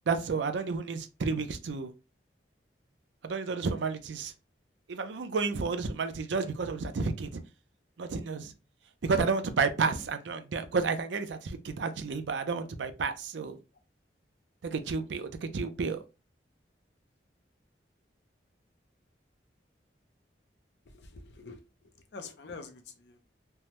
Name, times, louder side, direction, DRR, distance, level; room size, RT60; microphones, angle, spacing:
voice 1, 0.1-1.9 3.2-4.3 4.9-7.4 8.0-8.5 9.0-13.6 14.6-16.0, right 4 dB, 85° right, 0.5 m, -31 dB
voice 2, 20.9-23.2, left 4 dB, 70° left, 0.5 m, -47 dB
3.3 x 2.0 x 2.9 m
head